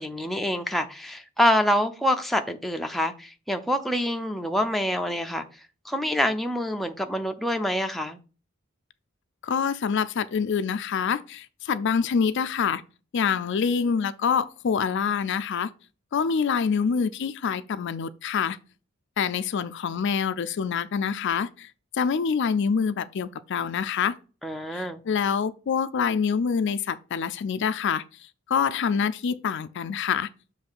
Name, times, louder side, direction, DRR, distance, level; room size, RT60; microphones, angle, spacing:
voice 1, 0.0-5.4 5.8-8.2 24.4-25.0, equal, ahead, 0.5 m, -26 dB
voice 2, 9.4-12.8 13.1-15.7 16.1-18.6 19.2-21.7 21.9-24.1 24.7-28.0 28.5-30.3, left 6 dB, 60° left, 0.4 m, -26 dB
6.9 x 3.2 x 5.5 m
head